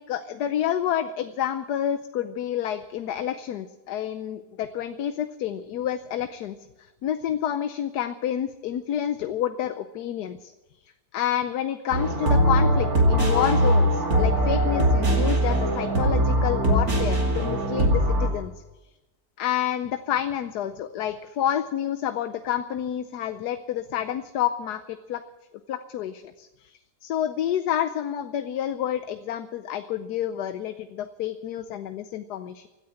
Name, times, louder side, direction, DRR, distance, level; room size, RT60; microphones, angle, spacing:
voice 1, 0.0-10.5 11.1-18.5 19.4-25.2 25.7-32.7, left 10 dB, 85° left, 10 dB, 1.3 m, -29 dB
sound 1, 11.9-18.3, equal, 70° right, 3.0 m, -21 dB
16.5 x 9.6 x 8.9 m, 1.0 s
omnidirectional pair, 1.7 m